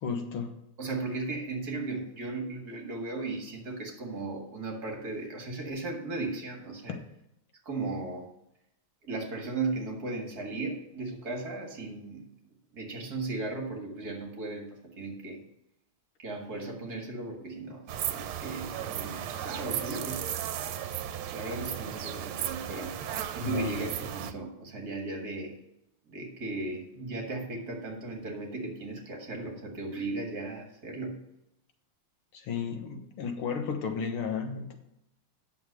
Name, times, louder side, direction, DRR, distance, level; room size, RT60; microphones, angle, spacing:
voice 1, 0.0-0.6 23.4-23.7 32.3-34.8, left 6 dB, 80° left, 5 dB, 2.1 m, -33 dB
voice 2, 0.8-7.0 7.6-8.3 9.0-12.2 12.7-15.4 16.2-20.3 21.3-23.0 23.3-25.6 26.1-31.2, right 3 dB, 45° right, 2 dB, 2.2 m, -36 dB
sound 1, 17.9-24.3, right 10 dB, 80° right, 1.6 m, -35 dB
9.3 x 6.8 x 6.5 m, 0.82 s
omnidirectional pair, 2.3 m